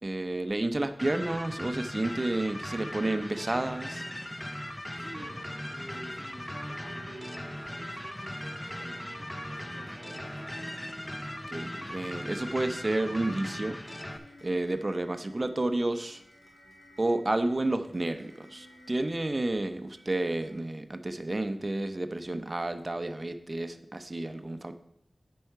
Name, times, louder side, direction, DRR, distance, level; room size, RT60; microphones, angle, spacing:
voice 1, 0.0-4.0 11.5-13.8 14.4-16.2 17.0-24.7, right 2 dB, 30° right, 9 dB, 0.6 m, -31 dB
sound 1, 1.0-14.2, left 1 dB, 10° left, 0.6 m, -39 dB
sound 2, 1.9-20.5, equal, 80° left, 2.1 m, -56 dB
voice 2, 4.9-10.5, right 1 dB, 10° right, -6 dB, 1.7 m, -49 dB
sound 3, 5.2-10.5, right 4 dB, 80° right, 0.8 m, -55 dB
8.5 x 5.5 x 4.6 m, 0.80 s
wide cardioid pair, 70°, 0 cm